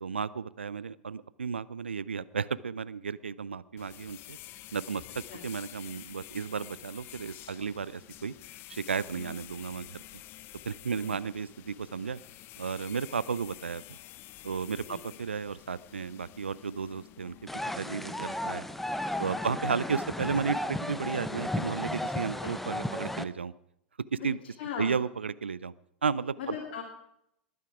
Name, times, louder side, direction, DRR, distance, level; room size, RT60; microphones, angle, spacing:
voice 1, 0.0-4.4 4.7-8.3 8.7-10.0 10.7-12.2 12.6-13.8 14.4-17.3 17.8-18.6 19.2-23.5 24.1-24.4 24.8-25.7 26.0-26.6, right 5 dB, 85° right, 19 dB, 0.5 m, -33 dB
sound 1, 3.8-19.8, left 15 dB, 40° left, 0.7 m, -50 dB
voice 2, 14.9-15.2 19.3-19.5 22.4-22.5 24.2-24.3 24.6-24.9 26.4-26.8, left 8 dB, 55° left, 0 dB, 2.7 m, -39 dB
sound 2, 17.5-23.2, left 1 dB, 5° left, 0.7 m, -34 dB
20.0 x 9.4 x 4.8 m, 0.78 s
figure-of-eight pair, 95°, 6 cm